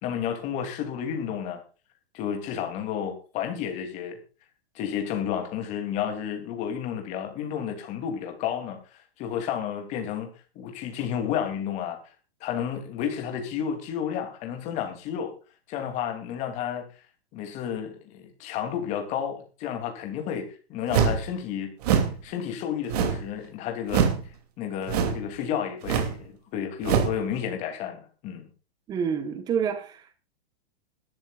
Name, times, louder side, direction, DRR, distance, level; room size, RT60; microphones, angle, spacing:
voice 1, 0.0-1.6 2.1-4.2 4.7-8.8 9.2-10.3 10.5-12.0 12.4-15.3 15.7-16.8 17.3-21.7 22.2-24.1 24.6-28.4, left 8 dB, 20° left, 2.9 m, -31 dB
sound 1, 20.9-21.3 21.8-22.2 22.9-23.3 23.9-24.2 24.9-25.3 25.8-26.2 26.8-27.2, right 7 dB, 40° right, 2.8 m, -24 dB
voice 2, 28.9-30.1, right 7 dB, 10° right, 1.2 m, -28 dB
21.5 x 13.0 x 2.4 m
hypercardioid pair, 170°, 31 cm